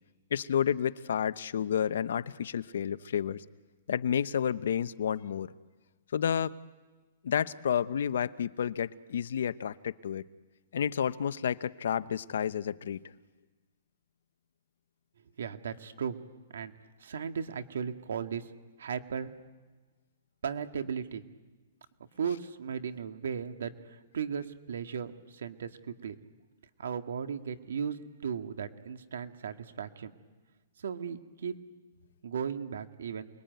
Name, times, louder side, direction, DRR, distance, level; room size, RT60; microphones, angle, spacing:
voice 1, 0.3-3.4 3.9-5.5 6.1-6.5 7.2-10.2 10.7-13.0, left 8 dB, 75° left, 14 dB, 0.9 m, -30 dB
voice 2, 15.4-16.2 16.5-16.7 17.0-18.5 18.8-19.3 20.4-21.2 22.2-26.2 26.8-30.1 30.8-31.5 32.2-33.3, right 7 dB, 80° right, 7 dB, 1.8 m, -36 dB
29.0 x 21.0 x 9.4 m, 1.3 s
hypercardioid pair, 160°, 0 cm